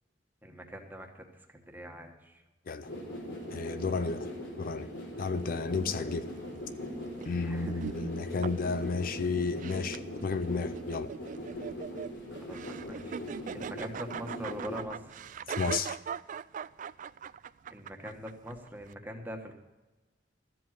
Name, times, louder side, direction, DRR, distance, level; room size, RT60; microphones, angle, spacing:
voice 1, 0.4-1.2 1.5-2.4 7.4-7.9 12.4-15.2 17.7-19.6, equal, 10° right, 3 dB, 1.5 m, -43 dB
sound 1, 2.8-14.8, equal, 85° left, 4.5 m, -41 dB
voice 2, 3.5-4.3 4.6-4.9 5.2-6.3 7.3-11.1 15.6-16.0, left 4 dB, 50° left, 12 dB, 0.5 m, -32 dB
sound 2, 5.3-18.9, right 6 dB, 45° right, 0.3 m, -42 dB
13.5 x 7.7 x 7.5 m, 1.1 s
head